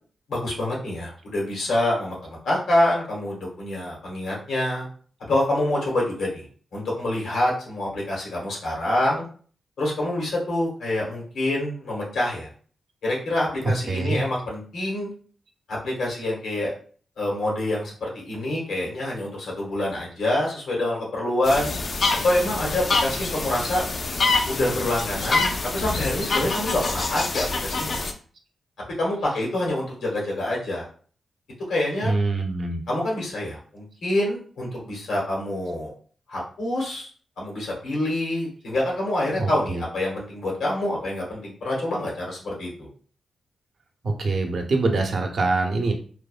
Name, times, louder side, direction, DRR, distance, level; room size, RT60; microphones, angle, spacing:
voice 1, 0.3-4.9 5.3-6.4 6.7-9.2 9.8-12.5 13.0-15.1 15.7-16.7 17.2-21.7 22.2-23.8 24.4-28.1 29.0-30.9 31.7-32.1 32.9-35.9 36.3-37.1 37.4-42.9, left 1 dB, 85° left, -3 dB, 1.2 m, -26 dB
voice 2, 13.9-14.2 32.0-32.8 39.4-39.8 44.0-45.9, right 3 dB, 65° right, 3 dB, 0.6 m, -24 dB
sound 1, 21.4-28.1, left 3 dB, 55° left, 0.4 m, -26 dB
3.2 x 2.1 x 2.3 m, 0.43 s
cardioid pair, 55°, 0 cm